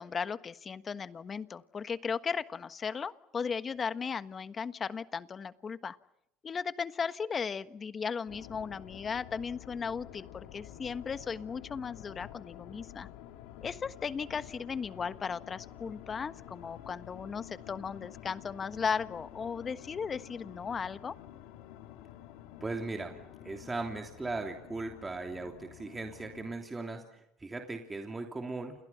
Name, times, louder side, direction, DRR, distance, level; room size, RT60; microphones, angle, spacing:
voice 1, 0.0-6.0 6.4-13.1 13.6-21.1, left 6 dB, 30° left, 13 dB, 1.3 m, -36 dB
sound 1, 8.3-26.6, left 12 dB, 80° left, 2.9 m, -50 dB
voice 2, 22.6-28.9, right 3 dB, 15° right, 3 dB, 3.1 m, -38 dB
30.0 x 29.0 x 5.8 m, 0.78 s
supercardioid pair, 105°, 0 cm